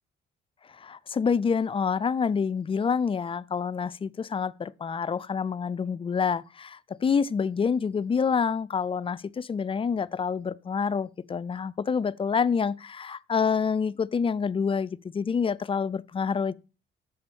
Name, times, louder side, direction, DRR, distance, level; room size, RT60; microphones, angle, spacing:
voice 1, 0.7-16.5, left 6 dB, 25° left, 0.4 m, -27 dB
7.0 x 5.3 x 6.9 m
cardioid pair, 90°, 20 cm